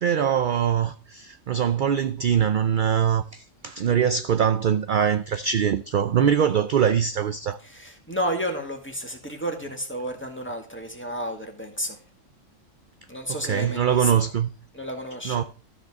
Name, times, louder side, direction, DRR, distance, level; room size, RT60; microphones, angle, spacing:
voice 1, 0.0-7.6 13.3-14.5 15.2-15.4, right 8 dB, 55° right, 0.6 m, -23 dB
voice 2, 7.6-12.0 13.1-14.1 14.7-15.4, equal, 10° left, 1.9 m, -31 dB
13.0 x 5.4 x 6.2 m
omnidirectional pair, 1.3 m